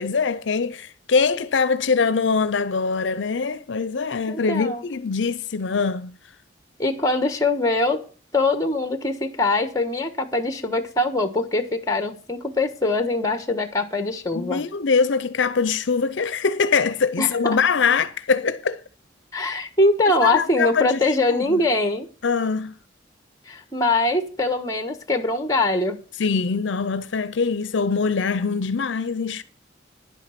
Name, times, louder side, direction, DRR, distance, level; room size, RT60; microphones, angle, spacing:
voice 1, 0.0-6.2 14.3-18.8 20.2-21.7 22.2-22.8 26.2-29.4, left 5 dB, 70° left, 0.5 m, -23 dB
voice 2, 4.3-4.8 6.8-8.0 8.3-14.6 17.2-17.6 19.3-22.1 23.4-26.0, left 2 dB, 15° left, 1.3 m, -22 dB
10.5 x 8.4 x 5.8 m
head